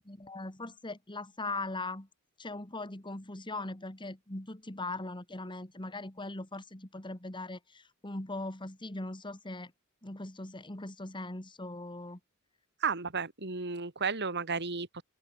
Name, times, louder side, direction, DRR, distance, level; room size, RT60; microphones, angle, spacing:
voice 1, 0.1-2.1 2.4-9.7 10.0-12.2, left 2 dB, 20° left, 2.2 m, -40 dB
voice 2, 12.8-15.0, right 5 dB, 50° right, 3.2 m, -33 dB
open air
head